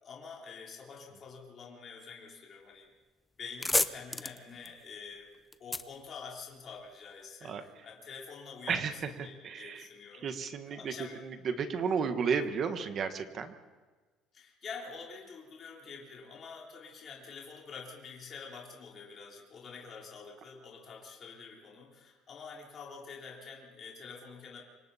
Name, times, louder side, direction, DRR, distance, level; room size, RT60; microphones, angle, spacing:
voice 1, 0.0-2.9 3.4-5.3 5.6-8.9 9.2-10.3 10.7-11.2 14.3-24.6, left 5 dB, 30° left, -3 dB, 3.6 m, -47 dB
sound 1, 2.9-3.0 3.3-6.9, left 2 dB, 5° left, 0.6 m, -34 dB
voice 2, 9.2-9.9 10.1-10.9 11.2-13.5, right 6 dB, 30° right, 8 dB, 1.3 m, -33 dB
27.0 x 25.5 x 4.2 m, 1.3 s
cardioid pair, 180°, 0 cm